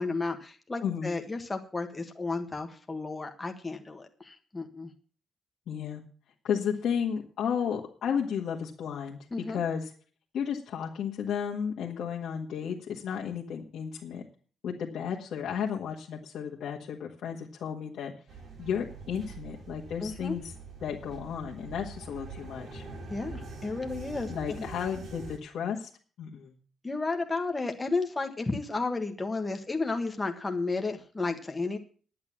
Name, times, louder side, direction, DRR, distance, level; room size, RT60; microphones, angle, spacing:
voice 1, 0.0-4.9 9.3-9.6 20.0-20.3 23.1-24.7 26.8-31.8, left 3 dB, 15° left, 4 dB, 1.4 m, -33 dB
voice 2, 5.7-6.0 6.4-9.2 9.5-9.9 10.3-14.2 14.6-18.1 18.6-20.5 20.8-22.8 24.3-25.9 26.2-26.5, left 7 dB, 65° left, -3 dB, 1.7 m, -33 dB
sound 1, 18.3-25.4, right 3 dB, 50° right, 3.0 m, -44 dB
11.0 x 8.7 x 7.3 m, 0.41 s
cardioid pair, 170°, 0 cm